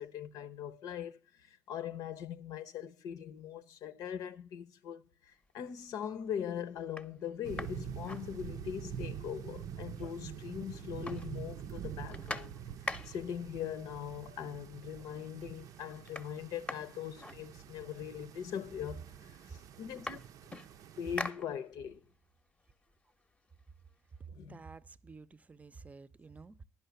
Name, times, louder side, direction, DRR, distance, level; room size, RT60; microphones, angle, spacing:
voice 1, 0.0-12.5 12.8-20.2 21.0-22.0 24.3-24.6, left 9 dB, 80° left, 0.8 m, -41 dB
sound 1, 5.4-5.9 6.4-6.5 6.8-8.9 9.2-9.3 9.6-10.4 10.7-13.4 14.4-14.5 14.9-15.3 15.6-18.0 18.8-18.9 19.2-22.0 22.5-24.2, left 2 dB, 15° left, 0.8 m, -45 dB
sound 2, 7.4-21.3, right 9 dB, 70° right, 0.5 m, -46 dB
voice 2, 24.2-26.6, right 4 dB, 25° right, 0.6 m, -51 dB
10.5 x 5.6 x 8.0 m
cardioid pair, 85°, 6 cm